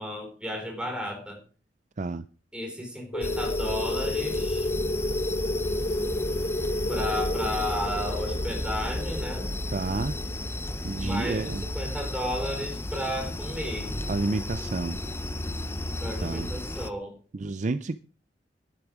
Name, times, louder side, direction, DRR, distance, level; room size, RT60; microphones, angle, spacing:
voice 1, 0.0-1.4 2.5-4.7 6.9-9.5 11.0-13.9 16.0-17.1, equal, 5° right, 4.0 m, -33 dB
sound 1, 3.1-11.5, left 1 dB, 35° left, 0.9 m, -31 dB
sound 2, 3.2-16.9, left 1 dB, 15° left, 0.7 m, -33 dB
voice 2, 9.7-10.1 10.8-11.6 14.1-15.0 16.2-16.5 17.3-18.0, right 3 dB, 45° right, 0.5 m, -30 dB
11.5 x 10.5 x 4.9 m
head